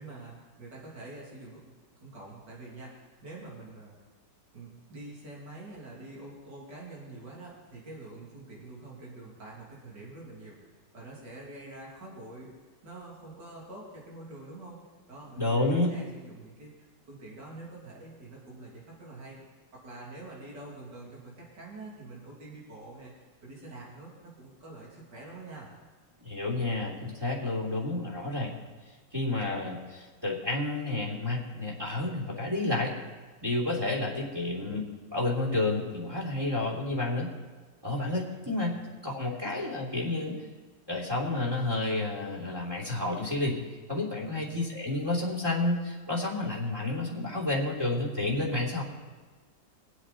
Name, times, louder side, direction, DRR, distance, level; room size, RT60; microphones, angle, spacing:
voice 1, 0.0-1.6 2.0-3.9 4.5-12.5 12.8-14.8 15.1-19.4 19.7-23.1 23.4-25.7 38.7-38.8 44.2-44.6, right 2 dB, 70° right, -4 dB, 3.6 m, -46 dB
voice 2, 15.4-15.9 26.2-28.5 29.1-32.9 33.4-34.8 35.1-37.3 37.8-40.4 40.9-43.6 43.9-48.8, left 2 dB, 15° right, -4 dB, 2.9 m, -30 dB
24.0 x 8.1 x 4.2 m, 1.3 s
omnidirectional pair, 1.9 m